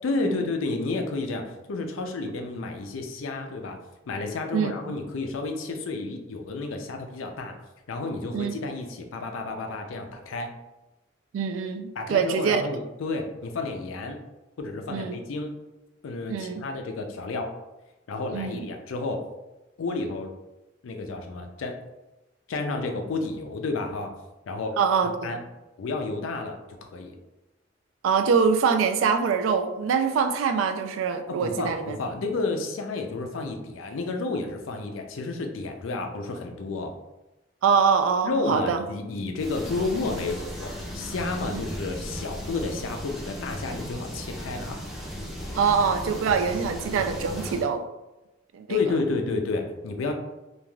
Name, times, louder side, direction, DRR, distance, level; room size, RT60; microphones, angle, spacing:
voice 1, 0.0-3.8 4.1-7.6 7.9-10.5 12.0-14.2 14.6-15.5 16.0-17.5 18.1-19.2 19.8-20.3 20.8-21.7 22.5-24.1 24.5-24.7 25.2-25.4 25.8-27.2 31.3-36.9 38.2-44.8 48.7-50.1, left 3 dB, 85° left, 4 dB, 0.4 m, -31 dB
voice 2, 4.5-5.0 8.3-8.5 11.3-12.6 14.9-15.2 16.3-16.6 18.3-18.7 24.8-25.4 28.0-32.0 37.6-38.8 41.5-41.6 45.5-47.8 48.5-48.8, right 6 dB, 80° right, 8 dB, 0.3 m, -24 dB
sound 1, 39.4-47.7, equal, ahead, 0.5 m, -36 dB
3.2 x 2.4 x 2.3 m, 1.0 s
head